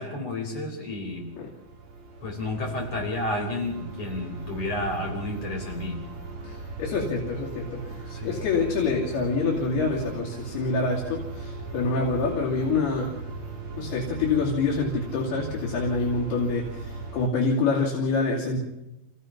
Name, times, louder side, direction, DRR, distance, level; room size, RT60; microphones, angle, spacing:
voice 1, 0.0-1.3 2.2-6.0 8.1-8.4, left 2 dB, 35° left, 0 dB, 5.2 m, -31 dB
sound 1, 0.8-17.3, right 3 dB, 45° right, 3.7 m, -38 dB
voice 2, 6.4-8.0 8.2-13.2 13.8-18.6, left 3 dB, 80° left, -4 dB, 4.5 m, -26 dB
28.0 x 16.5 x 5.9 m, 0.94 s
omnidirectional pair, 4.5 m